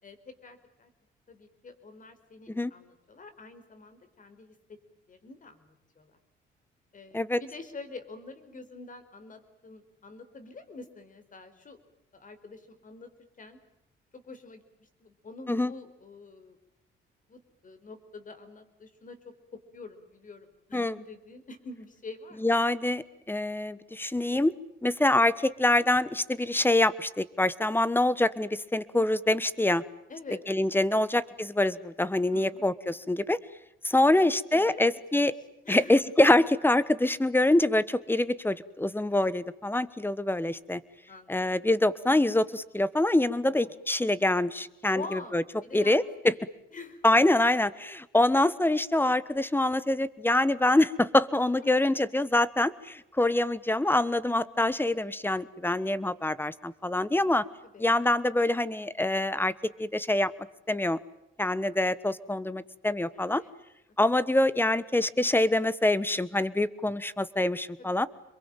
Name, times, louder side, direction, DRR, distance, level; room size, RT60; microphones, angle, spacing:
voice 1, 0.0-0.9 1.3-4.8 5.1-6.2 6.9-11.8 12.1-13.1 13.4-13.6 14.1-16.6 17.3-22.5 30.1-30.4 32.3-32.6 34.0-34.9 35.1-35.3 35.6-35.9 41.1-41.6 43.4-43.8 44.9-46.5 46.7-47.0 51.6-51.7 57.6-57.9 63.1-63.5 67.8-68.1, left 3 dB, 40° left, 9 dB, 4.6 m, -46 dB
voice 2, 22.4-24.5 24.8-29.8 30.5-33.4 33.8-35.3 35.7-40.8 41.3-45.4 45.7-46.3 47.0-57.4 57.8-59.5 59.8-60.3 60.7-61.0 61.4-63.4 64.0-68.1, left 1 dB, 10° left, 17 dB, 1.3 m, -25 dB
27.0 x 23.0 x 9.2 m, 0.83 s
cardioid pair, 90°, 20 cm